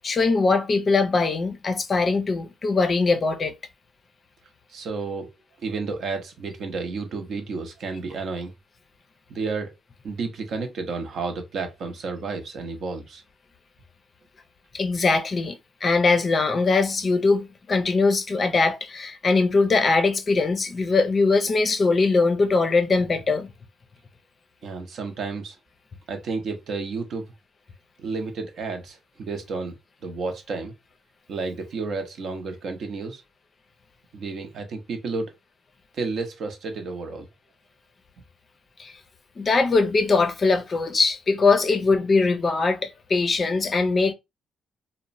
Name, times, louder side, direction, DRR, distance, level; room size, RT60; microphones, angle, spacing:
voice 1, 0.0-3.5 14.7-23.5 38.8-39.0 39.4-44.1, left 3 dB, 40° left, 0.5 m, -21 dB
voice 2, 4.7-5.3 5.6-8.5 9.3-9.7 10.0-13.2 24.6-25.6 26.1-27.3 28.0-29.7 30.0-30.7 31.3-33.2 34.1-35.3 35.9-37.3, right 4 dB, 65° right, 0.7 m, -31 dB
2.9 x 2.1 x 2.5 m
cardioid pair, 90°, 0 cm